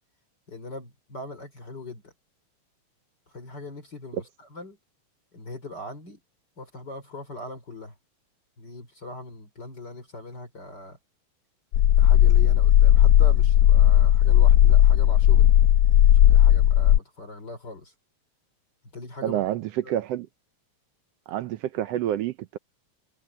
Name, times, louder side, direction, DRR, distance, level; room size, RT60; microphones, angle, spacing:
voice 1, 0.5-2.1 3.3-4.8 5.3-6.2 6.6-8.0 8.6-11.0 12.0-15.6 16.1-17.9 18.9-19.4 19.8-19.9, left 2 dB, 35° left, 4.5 m, -40 dB
sound 1, 11.7-17.0, left 11 dB, 85° left, 1.2 m, -16 dB
voice 2, 19.2-20.3 21.3-22.6, right 12 dB, 70° right, 1.6 m, -28 dB
omnidirectional pair, 3.4 m